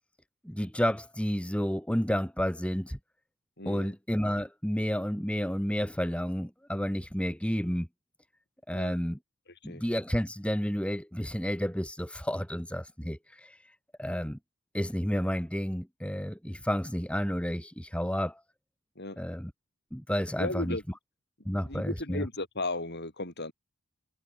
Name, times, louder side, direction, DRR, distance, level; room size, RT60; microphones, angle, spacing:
voice 1, 0.4-3.0 3.7-7.9 8.7-9.2 9.6-13.5 14.0-14.4 14.7-18.4 19.2-19.5 19.9-20.8 21.5-22.3, equal, 5° left, 2.5 m, -31 dB
voice 2, 3.6-3.9 8.7-8.9 9.6-9.8 19.0-19.2 20.4-20.8 21.6-23.5, left 2 dB, 50° left, 7.7 m, -35 dB
head